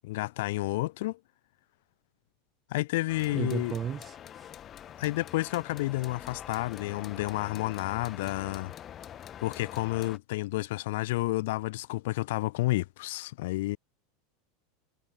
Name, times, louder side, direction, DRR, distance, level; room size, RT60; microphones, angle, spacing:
voice 1, 0.0-1.2 2.7-3.7 5.0-8.7 9.4-13.8, left 19 dB, 75° left, 2.0 m, -30 dB
sound 1, 3.1-10.2, left 10 dB, 30° left, 6.1 m, -45 dB
voice 2, 3.3-4.1, right 8 dB, 25° right, 5.1 m, -33 dB
supercardioid pair, 145°, 0 cm